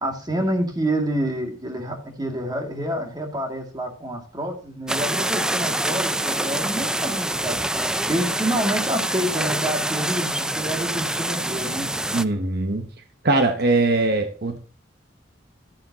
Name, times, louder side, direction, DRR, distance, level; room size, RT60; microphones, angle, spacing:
voice 1, 0.0-7.6 8.1-11.9, right 1 dB, 20° right, 2 dB, 2.2 m, -27 dB
sound 1, 4.9-12.2, right 1 dB, 5° right, 0.3 m, -26 dB
voice 2, 12.1-12.9 13.2-14.6, right 2 dB, 55° right, 6 dB, 0.9 m, -21 dB
12.0 x 9.5 x 2.8 m, 0.41 s
head